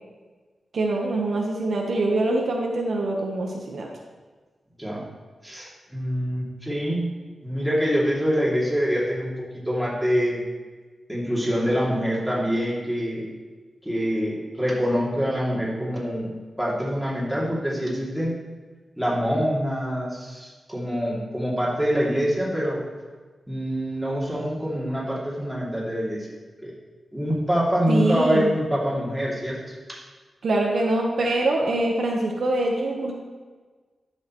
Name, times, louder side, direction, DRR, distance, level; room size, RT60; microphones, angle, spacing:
voice 1, 0.7-3.9 27.9-28.5 30.4-33.1, right 2 dB, 65° right, 0 dB, 1.1 m, -24 dB
voice 2, 5.4-7.1 7.4-10.4 11.1-13.3 13.8-16.3 16.6-18.4 19.0-22.8 23.5-26.3 26.6-26.7 27.1-30.0, equal, ahead, -6 dB, 2.6 m, -25 dB
11.5 x 6.4 x 3.1 m, 1.4 s
wide cardioid pair, 110°, 0 cm